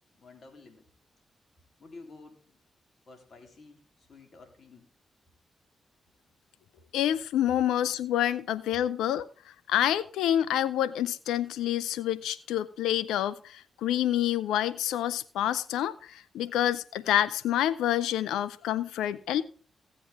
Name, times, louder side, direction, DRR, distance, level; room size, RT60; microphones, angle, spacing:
voice 1, 0.1-0.9 1.8-2.4 3.1-4.9, left 3 dB, 60° left, 5 dB, 3.5 m, -51 dB
voice 2, 6.9-9.3 9.7-19.4, left 11 dB, 85° left, 18 dB, 0.6 m, -28 dB
16.0 x 7.6 x 3.6 m, 0.43 s
hypercardioid pair, 40°, 0 cm